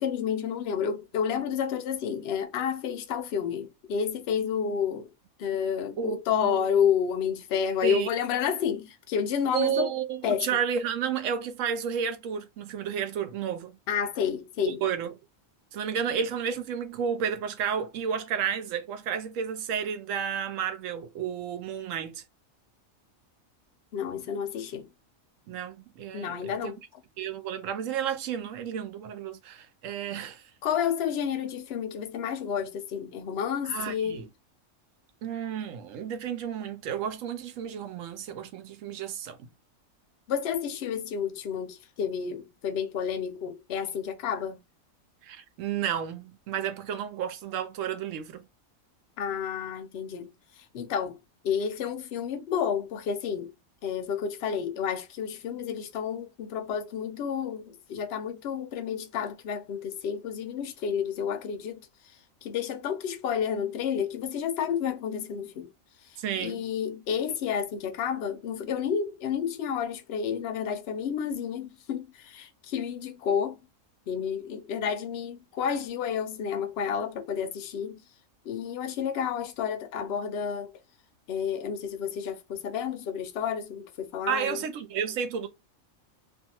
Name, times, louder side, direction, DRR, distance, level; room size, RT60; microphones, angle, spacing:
voice 1, 0.0-5.1 5.4-9.9 10.2-10.5 13.9-14.8 23.9-24.9 26.1-26.8 30.6-34.3 40.3-44.6 49.2-51.2 51.4-53.5 53.8-61.9 62.4-65.7 66.1-73.6 74.1-78.0 78.4-80.7 81.3-84.6, left 7 dB, 65° left, 0.7 m, -30 dB
voice 2, 6.0-6.6 7.8-8.1 9.5-13.8 14.7-15.1 15.7-22.2 25.5-26.7 27.2-30.4 33.6-34.3 35.2-39.5 45.2-48.4 66.2-66.6 84.3-85.5, right 8 dB, 70° right, 0.9 m, -31 dB
2.5 x 2.4 x 2.8 m
omnidirectional pair, 1.4 m